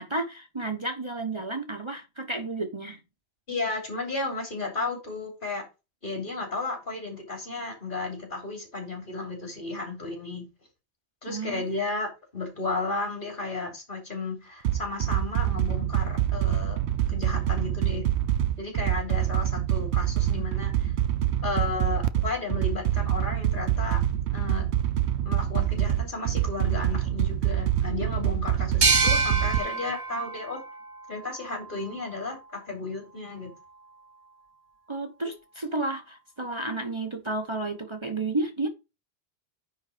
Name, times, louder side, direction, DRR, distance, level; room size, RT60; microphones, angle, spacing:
voice 1, 0.0-3.0 11.3-11.6 34.9-38.7, right 2 dB, 30° right, 1.0 m, -32 dB
voice 2, 3.5-5.6 6.0-10.5 11.2-16.8 17.1-18.0 18.6-20.9 21.4-24.0 24.3-24.7 25.2-30.6 31.1-33.5, left 3 dB, 50° left, 3.3 m, -33 dB
sound 1, 14.6-29.6, right 12 dB, 90° right, 1.0 m, -26 dB
sound 2, 28.8-32.2, right 4 dB, 65° right, 1.5 m, -27 dB
9.8 x 4.0 x 5.1 m
omnidirectional pair, 1.1 m